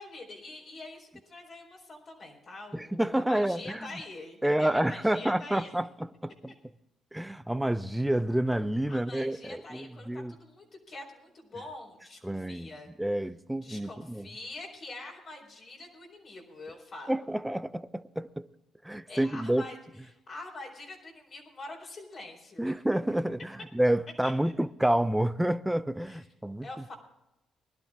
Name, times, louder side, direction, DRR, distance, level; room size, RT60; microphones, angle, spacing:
voice 1, 0.0-5.7 8.9-12.9 13.6-17.2 19.1-19.8 20.3-22.7 24.2-24.5 26.0-26.2 26.6-26.9, left 2 dB, 50° left, 4.2 m, -45 dB
voice 2, 2.7-3.9 4.4-6.5 7.1-10.3 12.2-12.7 13.0-14.3 17.1-18.5 18.8-19.7 22.6-26.7, right 1 dB, 5° right, 0.6 m, -29 dB
20.5 x 11.5 x 3.7 m
cardioid pair, 90°, 0 cm